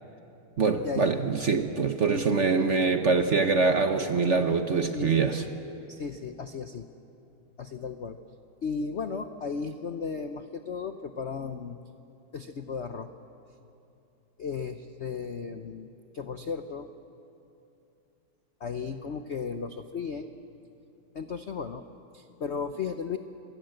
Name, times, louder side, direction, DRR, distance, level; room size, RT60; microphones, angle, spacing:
voice 1, 0.6-5.4, right 4 dB, 45° right, 6 dB, 1.0 m, -24 dB
voice 2, 4.9-5.5 5.9-6.9 7.6-8.2 8.6-11.8 12.3-13.1 14.4-16.9 18.6-20.3 21.1-21.8 22.1-23.2, left 5 dB, 70° left, 8 dB, 0.6 m, -35 dB
27.0 x 22.0 x 7.9 m, 2.7 s
omnidirectional pair, 2.3 m